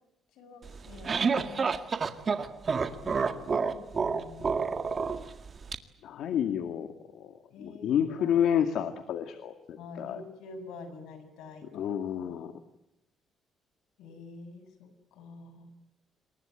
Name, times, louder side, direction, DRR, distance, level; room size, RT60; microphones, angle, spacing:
voice 1, 0.3-1.9 3.0-4.7 7.5-8.4 9.8-11.8 12.2-12.5 14.0-15.7, left 3 dB, 90° left, 10 dB, 7.1 m, -47 dB
sound 1, 0.7-5.8, right 5 dB, 35° right, 1.9 m, -29 dB
voice 2, 2.9-3.5 6.0-7.3 7.6-10.2 11.7-12.5, left 9 dB, 70° left, 8 dB, 2.1 m, -30 dB
27.5 x 22.5 x 9.1 m, 0.86 s
cardioid pair, 125°, 0 cm